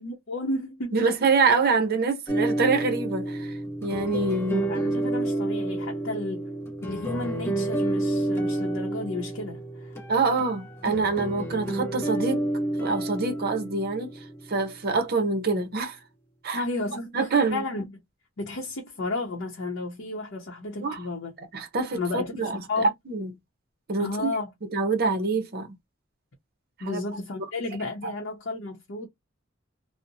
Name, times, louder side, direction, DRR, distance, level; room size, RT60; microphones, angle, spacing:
voice 1, 0.0-1.0 4.5-6.5 6.8-9.9 16.5-17.1 17.5-18.0 18.4-21.3 21.9-22.9 24.0-24.5 26.8-29.1, left 2 dB, 65° left, 0.7 m, -32 dB
voice 2, 0.9-3.5 3.8-4.7 10.1-12.5 12.8-14.1 14.5-16.0 16.4-16.6 17.1-17.6 20.8-21.0 21.4-23.3 23.9-24.3 24.7-25.7 26.9-27.0 28.0-28.1, right 4 dB, 50° right, 0.6 m, -25 dB
sound 1, 2.3-14.7, right 1 dB, 15° left, 0.8 m, -30 dB
2.6 x 2.0 x 2.6 m
head